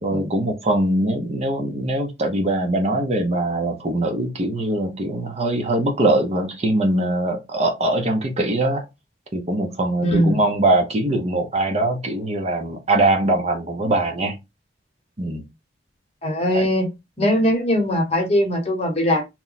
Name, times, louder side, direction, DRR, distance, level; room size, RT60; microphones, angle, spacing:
voice 1, 0.0-8.8 9.3-14.4 15.2-15.4 16.5-16.7, right 1 dB, 35° right, 0.6 m, -22 dB
voice 2, 10.0-10.4 16.2-16.9 17.2-19.2, equal, 35° left, 1.0 m, -20 dB
3.0 x 2.1 x 3.9 m
head